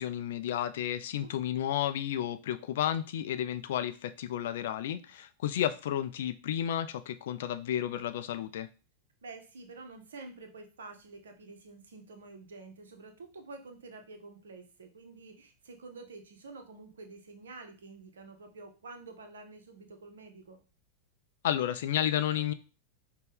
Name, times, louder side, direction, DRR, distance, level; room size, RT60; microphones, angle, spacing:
voice 1, 0.0-8.7 21.4-22.5, left 11 dB, 55° left, 0.3 m, -32 dB
voice 2, 9.2-20.6, right 3 dB, 65° right, 0.7 m, -49 dB
5.3 x 2.2 x 3.4 m
figure-of-eight pair, 90°, 0 cm